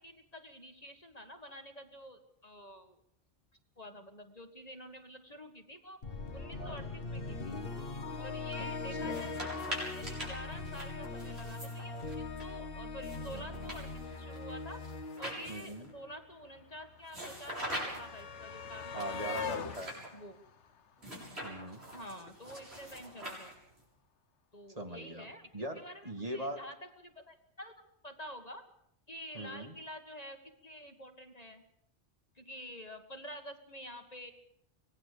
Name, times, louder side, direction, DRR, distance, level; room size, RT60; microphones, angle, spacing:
voice 1, 0.0-3.0 3.8-6.0 6.3-7.6 8.2-14.9 15.2-19.2 20.1-20.4 21.9-23.6 24.5-25.5 25.8-27.8 28.0-28.6 29.1-31.6 32.4-34.3, equal, 35° left, 6 dB, 1.8 m, -48 dB
sound 1, 6.0-16.2, left 3 dB, 55° left, 1.7 m, -41 dB
sound 2, 9.0-12.4 13.0-15.9 17.1-18.2 19.0-20.1 21.0-23.8, equal, 65° right, 7.7 m, -44 dB
voice 2, 13.3-13.7 15.5-15.9 18.9-20.2 21.4-21.8 24.7-25.3 25.5-26.6 29.3-29.7, right 1 dB, 35° right, 5 dB, 2.2 m, -41 dB
sound 3, 15.2-15.3 15.5-21.7 22.9-23.0 23.3-23.4, left 6 dB, 85° left, 1.3 m, -44 dB
25.0 x 18.5 x 6.8 m, 0.73 s
omnidirectional pair, 1.1 m